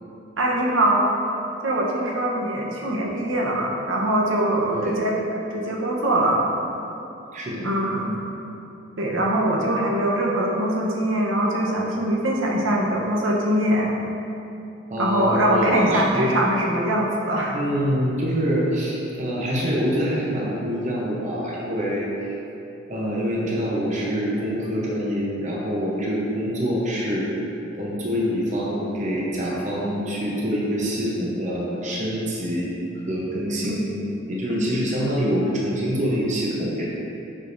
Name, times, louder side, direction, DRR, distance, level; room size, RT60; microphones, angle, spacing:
voice 1, 0.4-1.2 1.6-5.1 5.5-6.5 7.6-8.1 9.0-13.9 15.0-17.6 33.6-33.8 34.5-34.7, right 1 dB, 80° right, -2 dB, 0.9 m, -22 dB
voice 2, 7.3-7.7 14.9-16.3 17.5-22.3 22.9-27.3 27.8-32.7 33.1-33.9 34.3-36.8, equal, 40° right, -5 dB, 0.8 m, -25 dB
6.2 x 5.9 x 2.6 m, 2.9 s
head